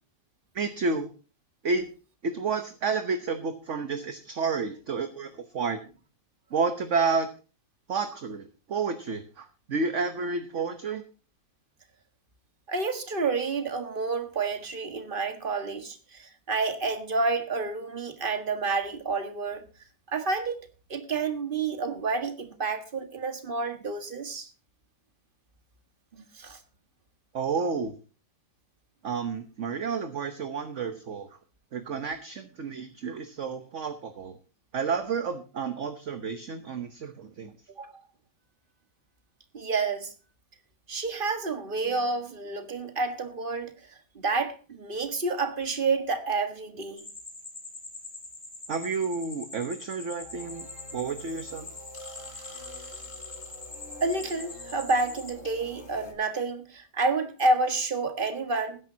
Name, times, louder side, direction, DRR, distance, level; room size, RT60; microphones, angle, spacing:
voice 1, 0.5-1.1 1.6-1.9 2.2-5.8 6.5-7.3 7.9-11.0 27.3-27.9 29.0-31.3 31.7-34.4 34.7-37.5 48.7-50.7 50.9-51.7, right 5 dB, 45° right, 1.2 m, -30 dB
voice 2, 12.7-19.6 20.1-24.5 26.3-26.6 37.7-37.9 39.5-40.1 40.9-43.7 44.1-47.1 54.0-58.8, right 3 dB, 30° right, 1.7 m, -29 dB
sound 1, 47.0-55.3, left 2 dB, 10° left, 3.1 m, -43 dB
sound 2, 50.2-56.1, left 2 dB, 40° left, 2.7 m, -47 dB
20.0 x 10.5 x 2.8 m
omnidirectional pair, 2.0 m